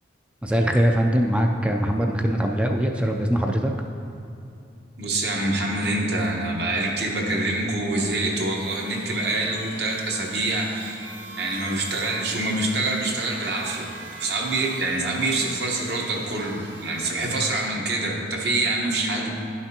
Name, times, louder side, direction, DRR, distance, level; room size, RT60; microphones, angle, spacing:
voice 1, 0.4-3.7, equal, 5° right, 2 dB, 0.3 m, -22 dB
voice 2, 5.0-11.0 11.4-13.9 14.2-19.3, right 2 dB, 60° right, -1 dB, 1.1 m, -25 dB
sound 1, 8.1-17.7, right 2 dB, 80° right, 1.4 m, -42 dB
11.0 x 5.8 x 2.8 m, 2.7 s
head